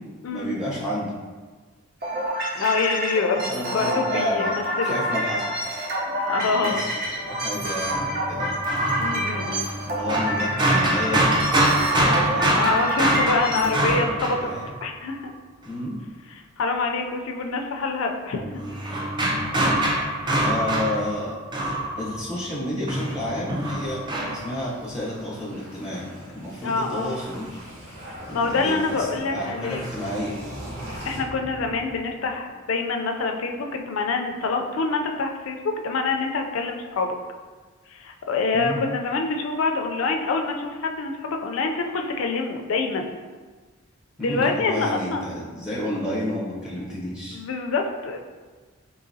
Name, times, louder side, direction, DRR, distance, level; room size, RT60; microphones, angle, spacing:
voice 1, 0.3-1.2 3.5-5.8 6.4-8.6 9.9-11.2 11.9-12.6 13.5-14.7 15.7-16.0 19.4-19.5 20.4-21.4 22.0-27.6 28.3-30.3 38.5-38.8 44.2-47.4, left 1 dB, 5° right, -8 dB, 0.8 m, -31 dB
sound 1, 2.0-13.8, equal, 45° right, 0.8 m, -28 dB
voice 2, 2.6-5.0 6.3-6.8 8.9-9.7 12.6-14.5 14.8-15.3 16.3-18.4 19.6-19.7 26.6-27.1 28.3-29.8 31.0-37.2 37.9-43.1 44.2-45.2 47.3-48.2, left 4 dB, 70° left, 3 dB, 0.4 m, -26 dB
sound 2, 7.9-15.1 18.4-22.6 22.9-24.6, right 1 dB, 20° right, 0.3 m, -25 dB
sound 3, 23.2-32.5, equal, 90° right, 0.9 m, -41 dB
3.8 x 2.8 x 2.7 m, 1.4 s
head